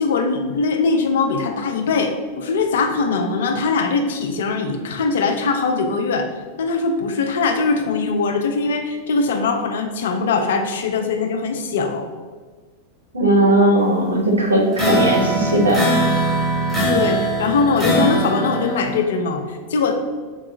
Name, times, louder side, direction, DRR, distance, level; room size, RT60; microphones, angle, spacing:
voice 1, 0.0-6.3 6.6-12.1 16.9-19.9, left 4 dB, 60° left, 6 dB, 0.4 m, -21 dB
voice 2, 13.1-15.8, right 1 dB, 75° right, 1 dB, 0.6 m, -17 dB
sound 1, 14.7-19.0, right 1 dB, 5° right, 1.1 m, -21 dB
4.5 x 2.7 x 2.5 m, 1.4 s
figure-of-eight pair, 90°, 0 cm